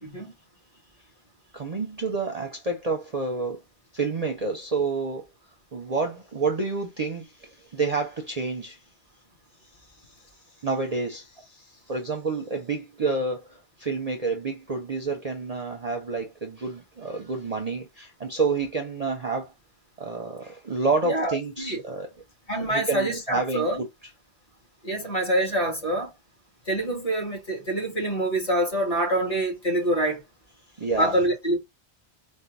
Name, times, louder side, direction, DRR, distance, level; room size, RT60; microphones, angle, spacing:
voice 1, 0.0-0.3 21.0-21.8 22.5-23.8 24.8-26.1 26.7-30.2 31.0-31.6, right 1 dB, 30° left, 2.0 m, -26 dB
voice 2, 1.5-3.6 3.9-5.2 5.7-8.8 10.6-19.5 20.0-22.1 22.7-23.9 30.8-31.2, right 4 dB, 40° right, 0.7 m, -29 dB
4.5 x 2.2 x 3.9 m
omnidirectional pair, 1.2 m